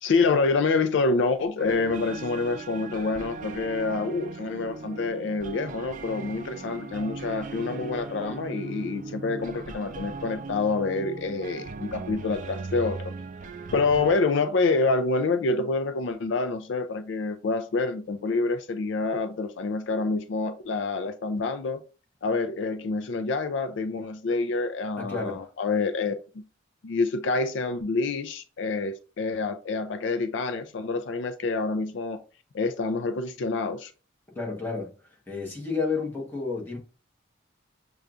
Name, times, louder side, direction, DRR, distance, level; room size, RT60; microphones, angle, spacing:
voice 1, 0.0-13.1 13.7-21.8 22.2-26.1 26.8-32.2 32.5-33.9, left 3 dB, 65° left, 0.4 m, -27 dB
sound 1, 1.6-14.2, right 4 dB, 40° right, 0.3 m, -38 dB
voice 2, 25.0-25.5 34.3-34.9 35.3-36.8, left 4 dB, 10° left, 1.1 m, -31 dB
6.5 x 2.4 x 2.4 m
head